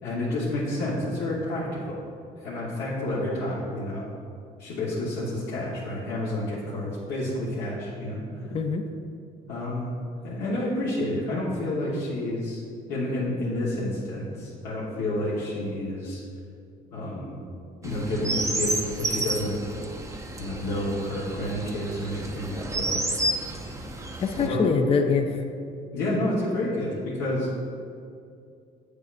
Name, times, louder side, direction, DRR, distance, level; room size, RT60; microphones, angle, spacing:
voice 1, 0.0-2.0 2.4-4.0 4.6-8.2 9.5-9.9 10.2-12.6 12.9-16.2 16.9-17.4 17.8-19.6 20.4-23.0 24.3-24.7 25.9-27.5, left 1 dB, 85° left, -8 dB, 1.2 m, -29 dB
voice 2, 8.5-8.8 24.2-25.4, left 5 dB, 35° left, 5 dB, 0.5 m, -24 dB
Chirp tweet, 17.8-24.5, right 2 dB, 20° right, 0.6 m, -31 dB
8.2 x 6.7 x 2.5 m, 2.5 s
cardioid pair, 110°, 17 cm